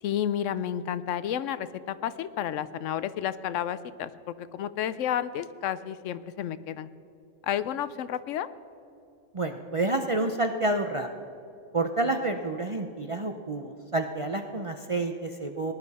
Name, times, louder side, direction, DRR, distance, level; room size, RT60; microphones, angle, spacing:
voice 1, 0.0-6.9 7.4-8.5, left 10 dB, 80° left, 15 dB, 0.9 m, -31 dB
voice 2, 9.3-11.1 11.7-15.7, right 2 dB, 40° right, 4 dB, 0.5 m, -29 dB
19.0 x 11.0 x 4.1 m, 2.8 s
omnidirectional pair, 1.3 m